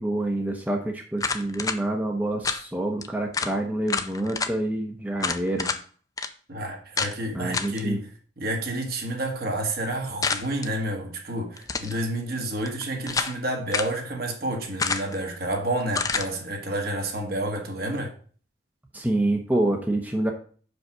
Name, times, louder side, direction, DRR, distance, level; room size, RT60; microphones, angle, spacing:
voice 1, 0.0-5.7 7.3-8.0 18.9-20.3, right 1 dB, 10° right, 0.8 m, -27 dB
sound 1, 1.2-1.8 2.4-2.6 3.0-3.1 3.3-3.5 3.9-4.5 5.2-5.8 6.2-6.3 7.0-7.1 7.5-7.8 10.2-10.7 11.6-12.0 12.7-13.4 13.7-14.0 14.8-15.2 15.9-16.3, left 5 dB, 20° left, 0.4 m, -28 dB
voice 2, 6.5-8.1 8.4-18.1, right 1 dB, 55° right, 1.5 m, -30 dB
5.2 x 5.0 x 6.1 m
head